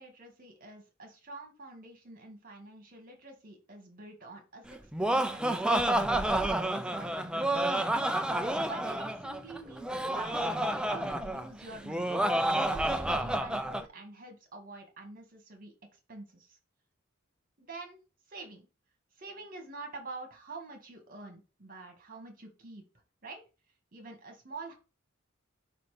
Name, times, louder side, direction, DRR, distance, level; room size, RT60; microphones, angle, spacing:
voice 1, 0.0-5.7 6.0-12.1 12.5-16.6 17.6-18.0 18.3-18.7 19.2-22.8 23.2-23.4 23.9-24.7, right 3 dB, 45° right, 3 dB, 1.8 m, -47 dB
Laughter, 4.7-13.8, right 1 dB, 5° right, 0.4 m, -29 dB
5.1 x 4.3 x 5.0 m, 0.31 s
head